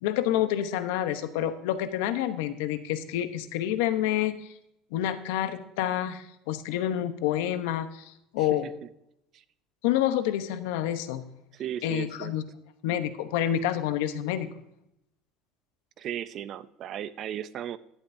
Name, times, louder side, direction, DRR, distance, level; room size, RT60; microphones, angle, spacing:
voice 1, 0.0-4.5 4.9-8.7 9.8-11.2 11.8-12.4 12.8-14.5, left 11 dB, 85° left, 10 dB, 0.9 m, -28 dB
voice 2, 8.4-8.7 9.3-9.4 11.5-12.3 16.0-17.8, right 10 dB, 40° right, 15 dB, 0.5 m, -36 dB
11.5 x 11.5 x 2.7 m, 0.79 s
cardioid pair, 150°, 0 cm